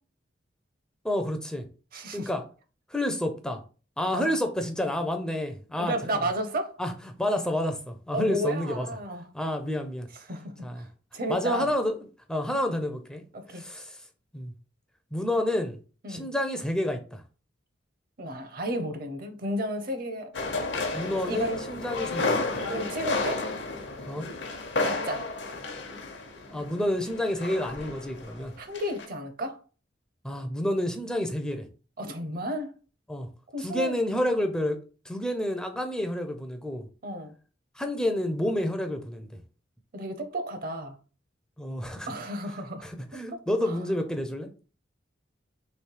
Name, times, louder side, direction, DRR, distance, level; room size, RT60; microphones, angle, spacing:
voice 1, 1.0-1.7 2.1-2.4 2.9-3.6 4.0-5.9 6.8-6.9 7.2-8.9 9.3-10.1 10.6-10.8 11.3-13.2 13.5-14.0 14.3-14.5 15.1-15.8 16.1-17.2 20.9-22.4 24.1-24.3 26.5-28.5 30.2-31.7 33.1-33.3 33.6-34.8 35.0-36.9 37.8-39.4 41.6-42.1 42.8-44.5, left 1 dB, 5° left, 0.4 m, -29 dB
voice 2, 1.9-2.3 4.1-4.3 5.8-6.8 8.1-9.2 10.3-10.9 11.1-11.7 13.3-13.6 16.0-16.3 18.2-20.3 20.7-20.8 21.3-21.6 22.7-23.4 24.8-25.3 28.6-29.6 32.0-32.7 33.5-33.9 37.0-37.3 39.9-41.0 42.1-42.9 43.3-43.4, right 1 dB, 55° right, 0.7 m, -32 dB
sound 1, 20.3-28.5 28.7-29.1, left 3 dB, 75° left, 0.8 m, -32 dB
3.2 x 3.1 x 4.5 m
head